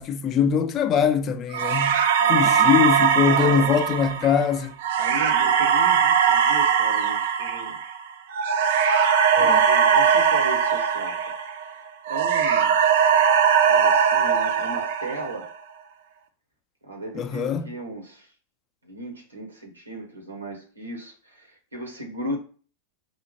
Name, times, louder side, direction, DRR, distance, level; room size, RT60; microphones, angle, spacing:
voice 1, 0.0-1.9 2.3-4.7 9.4-9.7 17.1-17.7, left 7 dB, 35° left, 0.4 m, -22 dB
sound 1, 1.5-11.7 12.1-15.5, right 7 dB, 65° right, 0.5 m, -20 dB
voice 2, 2.2-2.6 3.2-3.7 4.9-7.8 9.3-11.3 11.6-12.7 13.7-15.5 16.8-18.3 18.8-22.4, right 1 dB, 90° right, 1.0 m, -36 dB
4.8 x 2.1 x 2.9 m
figure-of-eight pair, 90°, 0 cm